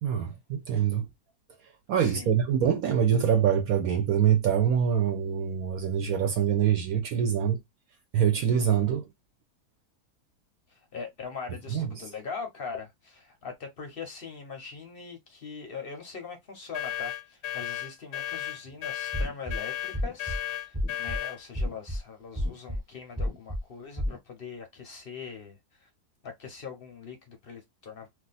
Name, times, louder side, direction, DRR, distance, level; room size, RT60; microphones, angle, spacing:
voice 1, 0.0-1.1 1.9-7.6 8.1-9.0 11.7-12.0, right 8 dB, 70° right, 1.0 m, -25 dB
voice 2, 2.0-2.3 10.7-25.9 26.2-28.1, left 5 dB, 55° left, 0.6 m, -41 dB
sound 1, 16.7-21.4, left 12 dB, 85° left, 1.1 m, -34 dB
sound 2, 19.1-19.6 19.9-20.4 20.7-21.2 21.5-22.0 22.4-22.8 23.2-23.6 24.0-24.2, left 1 dB, 15° right, 0.7 m, -30 dB
2.6 x 2.4 x 3.9 m
omnidirectional pair, 1.7 m